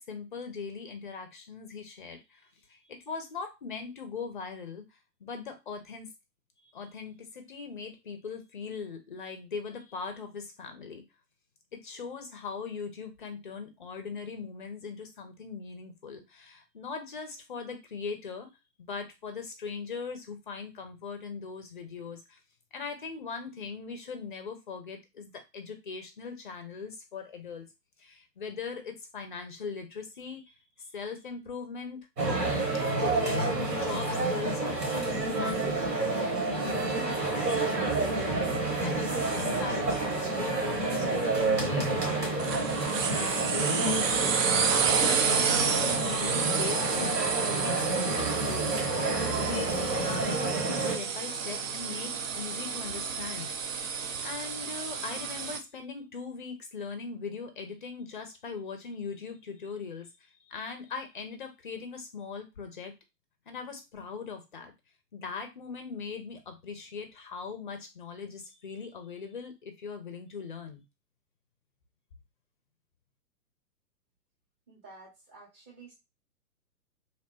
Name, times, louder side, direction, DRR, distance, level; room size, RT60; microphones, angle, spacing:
voice 1, 0.0-2.4 2.7-4.8 5.2-6.1 6.7-11.0 11.8-18.5 18.8-22.4 22.7-27.7 28.0-32.1 33.0-36.3 36.6-38.5 38.8-41.3 41.6-44.4 44.7-47.2 47.5-48.7 49.2-53.8 54.2-60.1 60.5-62.9 63.5-64.7 65.1-70.8, left 5 dB, 35° left, 6 dB, 0.5 m, -40 dB
sound 1, 32.2-51.0, right 2 dB, 80° right, 1.3 m, -29 dB
sound 2, 42.4-55.6, right 6 dB, 55° right, 0.5 m, -30 dB
voice 2, 74.7-75.9, right 3 dB, 10° right, -4 dB, 0.6 m, -51 dB
2.9 x 2.0 x 2.9 m, 0.23 s
figure-of-eight pair, 120°, 49 cm